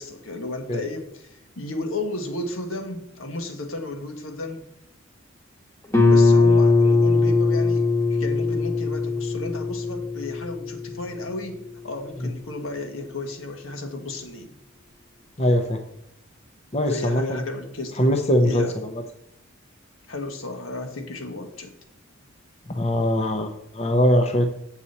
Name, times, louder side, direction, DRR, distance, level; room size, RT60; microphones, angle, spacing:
voice 1, 0.0-4.6 6.1-14.5 16.9-18.1 18.4-18.8 20.1-21.7, left 2 dB, 75° left, 4 dB, 1.4 m, -33 dB
Guitar, 5.9-11.3, left 3 dB, 15° left, 1.1 m, -20 dB
voice 2, 15.4-15.8 16.7-17.4 18.0-19.0 22.7-24.5, equal, 30° left, 5 dB, 0.6 m, -21 dB
8.2 x 7.2 x 4.2 m, 0.77 s
head